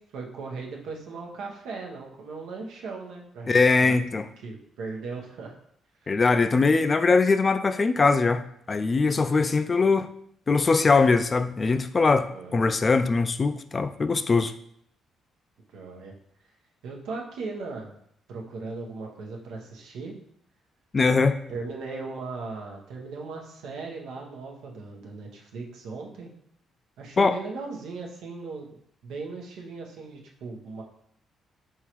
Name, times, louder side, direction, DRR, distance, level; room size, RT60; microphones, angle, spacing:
voice 1, 0.0-3.5 3.8-5.5 6.0-6.1 12.3-12.6 15.7-16.1 16.8-18.0 18.3-20.1 21.5-26.3 27.0-28.7 29.0-30.8, right 4 dB, 85° right, 0 dB, 0.9 m, -38 dB
voice 2, 3.5-4.3 6.1-10.1 10.5-14.5 20.9-21.4 27.2-27.4, left 4 dB, 35° left, 10 dB, 0.3 m, -21 dB
4.6 x 3.7 x 3.0 m, 0.67 s
cardioid pair, 90°, 0 cm